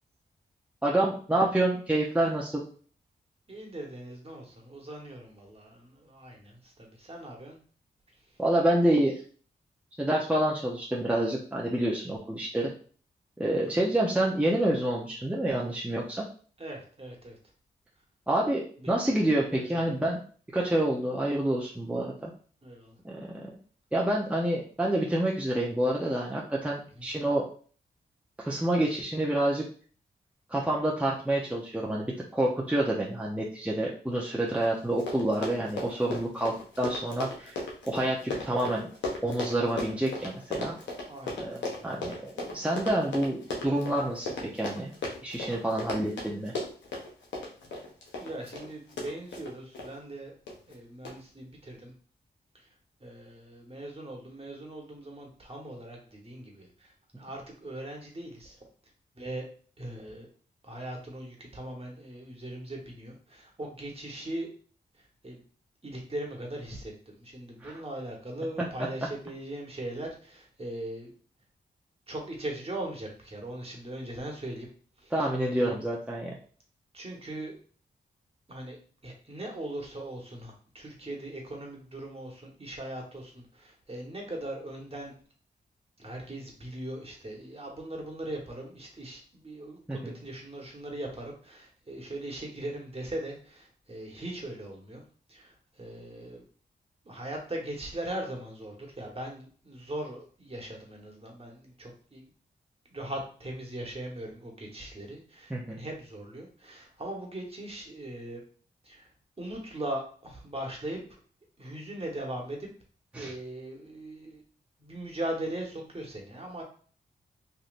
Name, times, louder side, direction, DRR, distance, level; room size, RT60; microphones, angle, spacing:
voice 1, 0.8-2.7 8.4-9.2 10.0-12.7 13.4-16.2 18.3-20.2 20.5-22.3 23.0-23.5 23.9-27.4 28.4-29.7 30.5-37.6 37.8-38.9 39.2-40.7 41.4-41.6 41.8-44.3 44.5-44.9 45.2-46.5 67.6-67.7 68.6-68.9 75.1-76.3 89.9-90.1 105.5-105.8 113.1-113.3, right 1 dB, 5° right, -3 dB, 0.7 m, -28 dB
voice 2, 3.5-7.6 13.5-13.9 16.6-17.4 18.8-18.9 19.6-20.0 22.6-22.9 27.0-27.2 41.1-42.2 48.2-50.3 50.7-51.9 52.5-52.6 53.0-58.6 59.2-59.5 59.8-60.3 60.6-64.5 65.2-65.4 65.8-71.1 72.1-74.7 75.0-75.3 75.6-75.8 76.9-77.5 78.5-78.8 79.0-85.1 86.0-95.0 95.3-96.4 97.0-102.3 102.9-108.4 108.8-109.1 109.4-111.0 111.6-112.7 113.1-114.4 114.8-116.6, right 1 dB, 30° right, 0 dB, 1.3 m, -40 dB
Run, 34.6-34.7 34.9-49.9 50.5-50.7 51.0-51.1, left 2 dB, 80° left, 0.9 m, -36 dB
3.2 x 2.6 x 2.5 m, 0.43 s
supercardioid pair, 40°, 19 cm